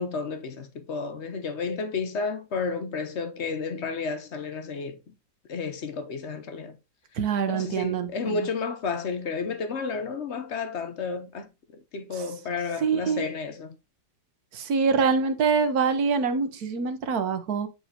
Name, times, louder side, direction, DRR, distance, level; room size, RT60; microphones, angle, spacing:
voice 1, 0.0-5.0 5.5-6.8 7.5-13.8, left 4 dB, 50° left, 0.8 m, -32 dB
voice 2, 7.2-8.5 12.8-13.3 14.5-17.7, right 5 dB, 60° right, 1.4 m, -25 dB
8.6 x 5.0 x 2.7 m
omnidirectional pair, 1.9 m